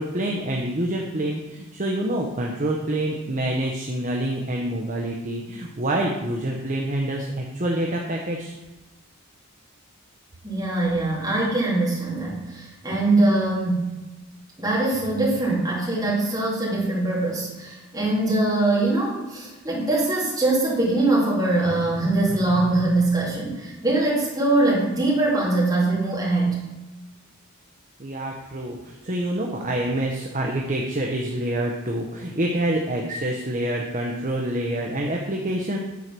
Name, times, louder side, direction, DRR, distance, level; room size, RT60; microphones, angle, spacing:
voice 1, 0.0-8.5 28.0-35.8, right 1 dB, 35° right, 0 dB, 0.8 m, -27 dB
voice 2, 10.4-13.9 14.6-26.5, right 2 dB, 15° right, -6 dB, 2.7 m, -22 dB
9.5 x 4.7 x 6.0 m, 1.1 s
head